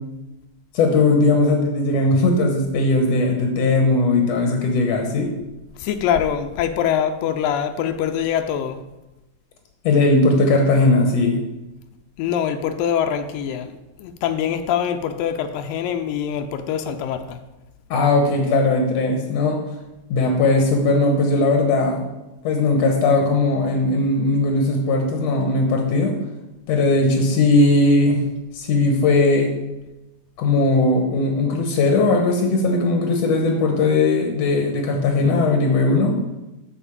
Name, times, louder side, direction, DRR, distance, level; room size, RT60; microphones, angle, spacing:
voice 1, 0.7-5.3 9.8-11.4 17.9-19.6 20.1-22.0 22.4-26.1 26.7-28.2 28.5-29.5 30.4-36.2, left 2 dB, 65° left, 2 dB, 1.8 m, -18 dB
voice 2, 5.8-8.8 12.2-17.4, left 9 dB, 85° left, 7 dB, 2.3 m, -24 dB
10.0 x 4.4 x 7.1 m, 1.0 s
omnidirectional pair, 4.0 m